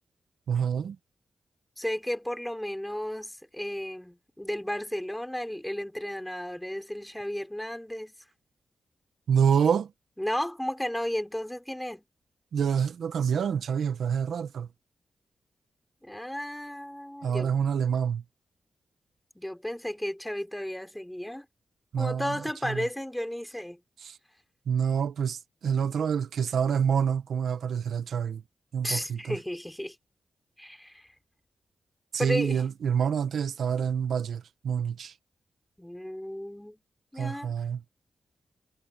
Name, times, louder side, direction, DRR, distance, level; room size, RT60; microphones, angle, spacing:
voice 1, 0.5-1.0 9.3-9.9 12.5-14.7 17.2-18.2 21.9-22.4 22.6-22.9 24.0-24.2 24.7-28.4 28.7-29.4 32.1-35.1 37.2-37.8, right 7 dB, 85° right, 1.4 m, -27 dB
voice 2, 1.8-8.1 10.2-12.1 16.0-17.5 19.3-21.5 22.0-23.8 28.8-30.0 30.6-31.1 32.2-32.6 35.8-36.8 37.1-37.5, left 1 dB, 5° left, 4.9 m, -33 dB
cardioid pair, 80°, 0 cm